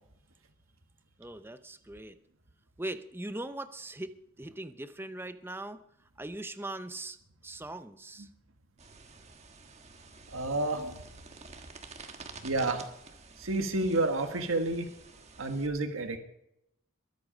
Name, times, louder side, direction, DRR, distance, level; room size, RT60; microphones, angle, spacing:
voice 1, 1.2-2.2 2.8-5.8 6.2-8.3, right 1 dB, 10° right, 11 dB, 0.6 m, -40 dB
sound 1, 8.8-15.7, right 4 dB, 30° right, 1.3 m, -50 dB
voice 2, 10.3-11.0 12.4-12.9 13.4-14.9 15.4-16.2, right 2 dB, 75° right, 6 dB, 1.6 m, -30 dB
21.5 x 8.3 x 5.2 m, 0.78 s
head